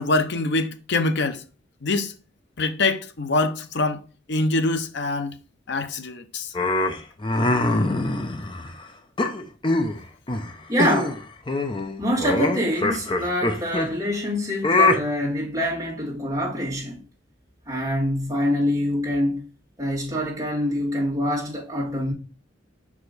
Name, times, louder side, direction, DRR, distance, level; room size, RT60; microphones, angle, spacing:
voice 1, 0.0-1.4 1.8-2.1 2.6-4.0 4.3-5.3 5.7-6.5, left 2 dB, 65° left, 0.7 m, -24 dB
sound 1, 6.5-8.7 9.2-10.0 10.3-10.5 10.8-11.2 11.5-13.9 14.6-15.0, left 2 dB, 25° left, 0.6 m, -23 dB
voice 2, 10.7-11.2 12.0-17.0 17.7-19.4 19.8-22.1, equal, 20° right, 2.2 m, -25 dB
5.6 x 4.9 x 4.0 m
head